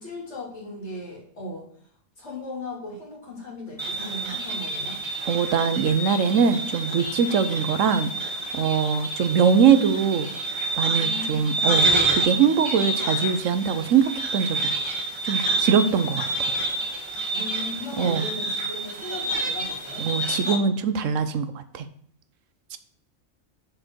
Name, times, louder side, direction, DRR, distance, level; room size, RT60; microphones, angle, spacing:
voice 1, 0.0-1.7 2.2-5.0 10.9-11.5 17.3-20.1, left 2 dB, 65° left, -3 dB, 3.1 m, -37 dB
Radio interference, 3.8-20.6, right 2 dB, 20° right, 1.5 m, -28 dB
voice 2, 5.3-8.1 8.5-10.3 10.8-14.6 15.2-16.5 18.0-18.2 20.0-21.9 22.7-22.8, right 6 dB, 85° right, 11 dB, 1.1 m, -22 dB
6.5 x 4.8 x 6.2 m, 0.64 s
omnidirectional pair, 1.3 m